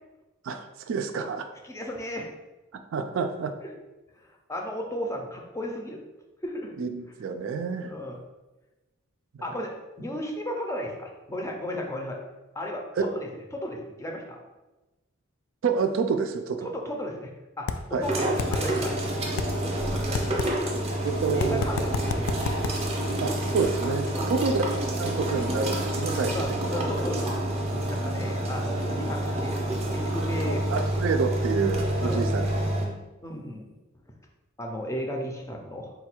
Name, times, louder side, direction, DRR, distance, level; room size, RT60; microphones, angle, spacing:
voice 1, 0.4-1.5 2.9-3.5 6.8-7.9 13.0-13.1 15.6-16.7 17.9-18.1 21.0-21.7 23.2-24.6 25.0-26.8 30.4-32.5, right 5 dB, 65° right, 7 dB, 0.3 m, -28 dB
voice 2, 1.7-2.3 3.6-3.7 4.2-6.0 6.4-6.7 7.8-8.2 9.4-12.2 12.5-14.4 16.6-17.3 17.6-18.9 19.6-20.4 20.7-20.8 21.2-22.3 24.1-24.3 26.3-27.4 27.9-29.6 29.9-30.6 32.0-32.3 33.2-33.7 34.6-35.9, equal, 15° left, 1 dB, 0.5 m, -34 dB
sound 1, 17.7-17.8 18.4-18.6 19.4-19.5 20.1-20.5 21.4-22.7, left 7 dB, 80° left, 0.3 m, -28 dB
sound 2, 18.0-32.9, right 1 dB, 30° right, 0.7 m, -28 dB
sound 3, 21.1-26.4, left 1 dB, 55° left, 0.7 m, -45 dB
4.0 x 2.3 x 4.4 m, 1.1 s
head